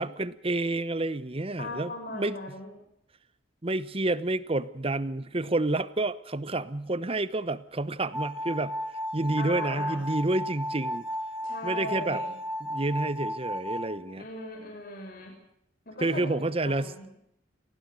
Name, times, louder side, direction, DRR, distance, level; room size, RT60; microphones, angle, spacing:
voice 1, 0.0-2.4 3.6-8.8 9.1-11.1 11.6-12.2 12.6-14.2 16.0-16.9, right 2 dB, 30° right, 16 dB, 1.0 m, -29 dB
voice 2, 1.6-2.7 9.4-10.0 11.4-12.4 14.1-15.3 15.9-17.1, left 2 dB, 50° left, 2 dB, 6.1 m, -39 dB
sound 1, 8.1-13.9, equal, 5° right, 3.3 m, -34 dB
27.5 x 19.0 x 6.5 m, 0.77 s
head